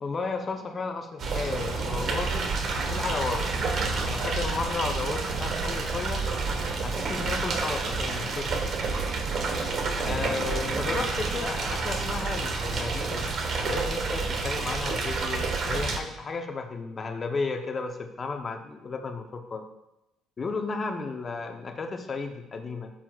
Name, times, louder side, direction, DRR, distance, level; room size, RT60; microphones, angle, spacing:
voice 1, 0.0-2.5 2.9-3.5 4.0-6.3 6.8-8.7 10.0-13.2 13.6-19.6 20.4-22.9, left 4 dB, 30° left, 4 dB, 0.7 m, -33 dB
sound 1, 1.2-16.0, right 4 dB, 50° right, 1.1 m, -29 dB
12.5 x 7.7 x 2.4 m, 0.92 s
cardioid pair, 120°, 0 cm